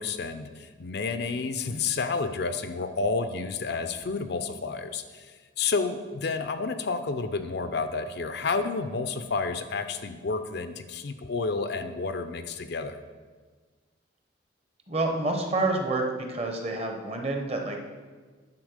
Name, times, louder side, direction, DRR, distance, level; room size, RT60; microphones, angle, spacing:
voice 1, 0.0-5.3 5.6-13.0, left 4 dB, 55° left, 9 dB, 0.5 m, -30 dB
voice 2, 14.9-16.0 16.3-17.8, right 2 dB, 30° right, 3 dB, 1.0 m, -28 dB
9.6 x 4.3 x 6.4 m, 1.4 s
head